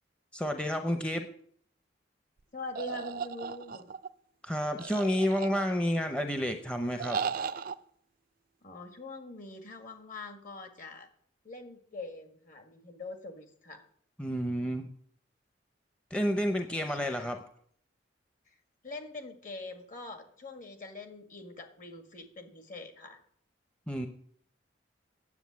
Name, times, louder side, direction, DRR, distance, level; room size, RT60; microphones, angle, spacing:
voice 1, 0.3-1.3 4.4-7.2 14.2-14.9 16.1-17.4 23.9-24.1, equal, 5° left, 5 dB, 0.7 m, -30 dB
voice 2, 2.5-3.9 8.6-11.1 11.4-13.8 16.4-17.4 18.5-18.6 18.8-23.2, left 2 dB, 45° left, 6 dB, 1.8 m, -44 dB
sound 1, 2.8-4.1 4.8-5.9 7.0-7.8, right 6 dB, 50° right, 0.4 m, -36 dB
9.6 x 8.1 x 8.3 m, 0.62 s
head